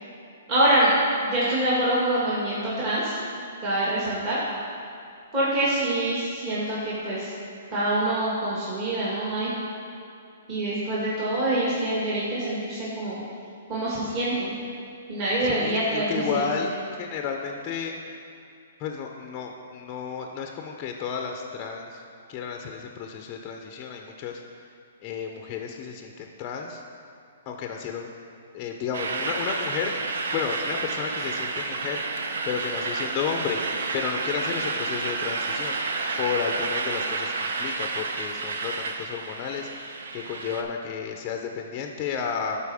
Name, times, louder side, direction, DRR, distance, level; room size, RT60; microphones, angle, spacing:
voice 1, 0.5-0.9 1.2-4.4 5.3-7.3 7.7-9.5 10.5-13.2 13.7-14.5 15.1-16.4, right 1 dB, 30° right, -9 dB, 1.8 m, -25 dB
voice 2, 15.4-16.7 17.0-18.0 18.8-22.0 22.3-24.4 25.0-26.8 27.5-28.1 28.5-32.2 32.4-33.6 33.9-42.6, left 6 dB, 25° left, 3 dB, 0.5 m, -32 dB
sound 1, 28.9-40.6, right 3 dB, 75° right, 0.6 m, -30 dB
12.0 x 4.4 x 3.5 m, 2.6 s
hypercardioid pair, 150°, 0 cm